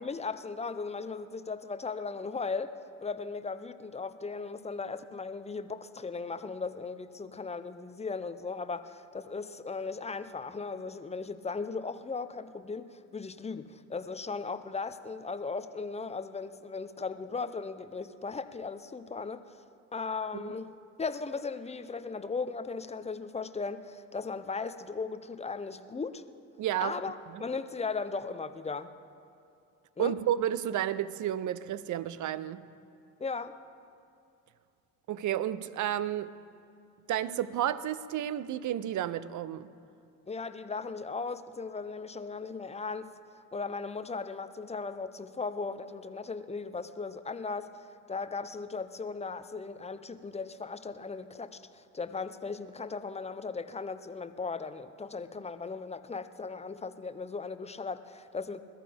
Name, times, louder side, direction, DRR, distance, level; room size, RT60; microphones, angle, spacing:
voice 1, 0.0-2.7 3.0-19.6 19.9-20.7 21.0-26.2 26.8-28.9 30.0-30.1 33.2-33.6 40.3-43.1 43.5-58.6, left 4 dB, 15° left, 11 dB, 0.7 m, -37 dB
voice 2, 26.6-27.0 27.3-27.4 30.0-32.6 35.1-36.3 37.1-39.7, right 11 dB, 45° right, 16 dB, 0.7 m, -31 dB
21.5 x 14.0 x 3.5 m, 2.5 s
hypercardioid pair, 70°, 43 cm